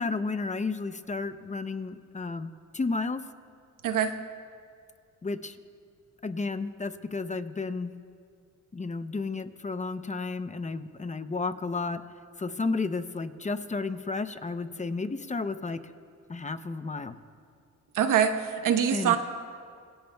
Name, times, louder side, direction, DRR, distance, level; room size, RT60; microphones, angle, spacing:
voice 1, 0.0-3.2 5.2-5.6 6.2-7.9 8.7-12.0 12.4-15.8 16.3-17.2 18.9-19.2, left 3 dB, 25° left, 11 dB, 0.7 m, -32 dB
voice 2, 17.9-19.2, right 8 dB, 80° right, 7 dB, 1.1 m, -24 dB
26.0 x 19.0 x 2.3 m, 2.3 s
cardioid pair, 90°, 32 cm